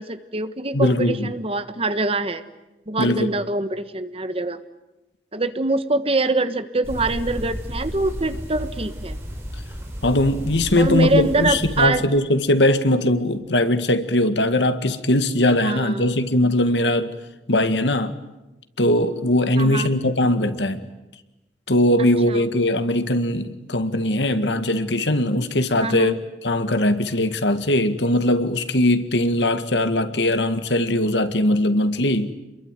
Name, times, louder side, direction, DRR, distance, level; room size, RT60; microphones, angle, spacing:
voice 1, 0.0-2.4 2.9-4.6 5.3-9.2 10.8-12.0 15.6-16.1 19.6-19.9 22.3-22.4 25.8-26.2, right 2 dB, 35° right, 11 dB, 1.4 m, -24 dB
voice 2, 0.7-1.3 3.0-3.3 10.0-17.1 17.5-18.2 18.8-20.9 21.7-26.1 26.4-32.3, left 1 dB, 75° left, 10 dB, 1.9 m, -20 dB
sound 1, 6.8-11.9, equal, 15° right, 5.9 m, -33 dB
28.0 x 22.5 x 9.4 m, 1.0 s
head